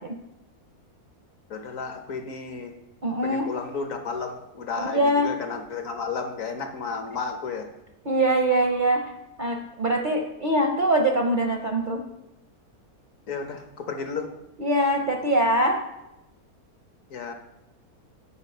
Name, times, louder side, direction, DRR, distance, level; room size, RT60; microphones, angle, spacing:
voice 1, 1.5-2.7 3.2-7.7 13.3-14.3 17.1-17.3, left 5 dB, 60° left, 6 dB, 1.2 m, -32 dB
voice 2, 3.0-3.5 4.8-5.3 8.0-9.1 9.4-12.0 14.6-15.8, right 1 dB, 45° right, 2 dB, 0.6 m, -23 dB
9.0 x 4.5 x 5.4 m, 0.93 s
omnidirectional pair, 1.6 m